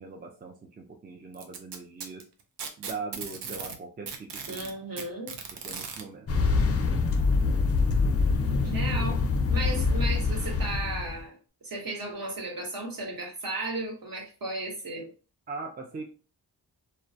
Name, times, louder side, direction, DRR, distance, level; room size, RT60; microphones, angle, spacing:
voice 1, 0.0-2.2 2.8-5.1 5.5-6.3 15.5-16.0, right 4 dB, 25° right, 2 dB, 0.4 m, -41 dB
Packing tape duct tape, 1.3-3.8 4.1-6.0 7.1-7.2 7.8-7.9 8.7-8.8, right 6 dB, 85° right, 0.5 m, -38 dB
voice 2, 4.5-5.5 8.6-9.2 9.5-11.4 11.6-15.1, right 2 dB, 55° right, 0 dB, 1.1 m, -35 dB
sound 1, 6.3-11.2, left 4 dB, 40° left, 0.4 m, -25 dB
2.2 x 2.1 x 2.6 m, 0.36 s
cardioid pair, 65°, 40 cm